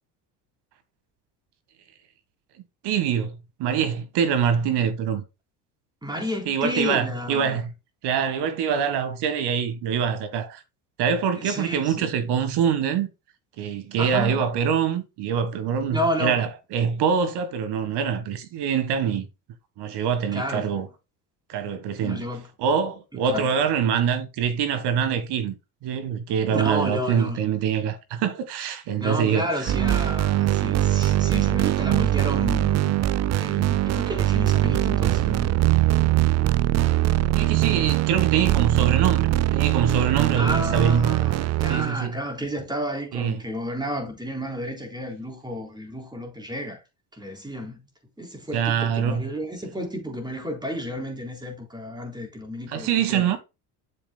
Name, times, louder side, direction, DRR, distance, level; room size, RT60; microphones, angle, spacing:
voice 1, 2.8-5.2 6.5-7.7 8.0-10.6 11.0-13.1 13.6-19.3 19.8-20.9 21.5-22.3 22.6-25.6 25.8-29.7 37.3-41.2 41.7-42.2 43.1-43.4 48.5-49.2 52.7-53.4, right 7 dB, 65° right, 1.7 m, -24 dB
voice 2, 6.0-7.6 11.4-12.1 14.0-14.5 15.9-16.4 20.3-20.7 22.0-22.5 23.2-23.5 26.5-27.4 29.0-33.0 33.3-35.5 40.3-46.8 47.1-47.8 48.2-53.3, equal, 10° right, 3.8 m, -31 dB
sound 1, 29.7-41.9, right 14 dB, 40° right, 0.5 m, -22 dB
8.7 x 7.3 x 2.3 m
supercardioid pair, 90°, 43 cm